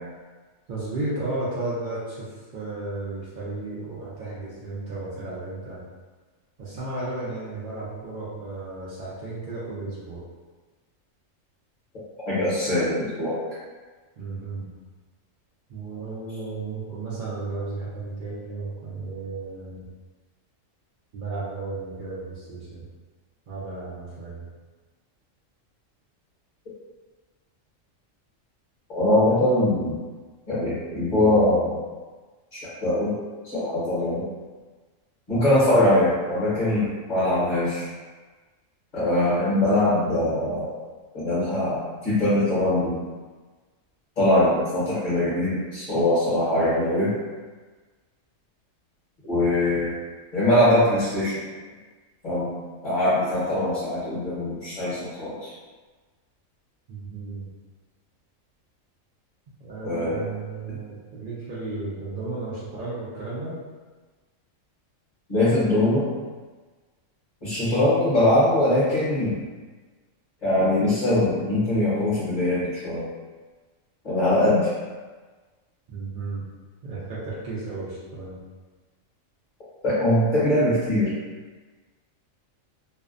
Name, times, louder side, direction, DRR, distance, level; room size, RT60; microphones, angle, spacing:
voice 1, 0.7-5.8 6.6-10.2 12.3-12.4 14.2-14.7 15.7-19.9 21.1-22.8 23.5-24.4 56.9-57.5 59.6-63.6 75.9-76.5 76.8-78.4, right 3 dB, 60° right, -8 dB, 0.5 m, -34 dB
voice 2, 12.2-13.4 28.9-30.0 30.5-31.8 32.5-33.2 33.4-34.2 35.3-37.8 38.9-40.9 41.1-43.0 44.2-47.1 49.2-50.0 50.3-51.4 52.2-52.6 52.8-55.5 59.8-60.2 65.3-66.1 67.4-69.4 70.4-73.1 74.0-74.7 79.8-81.1, left 1 dB, 40° left, -11 dB, 0.9 m, -22 dB
2.6 x 2.1 x 2.4 m, 1.4 s
omnidirectional pair, 1.4 m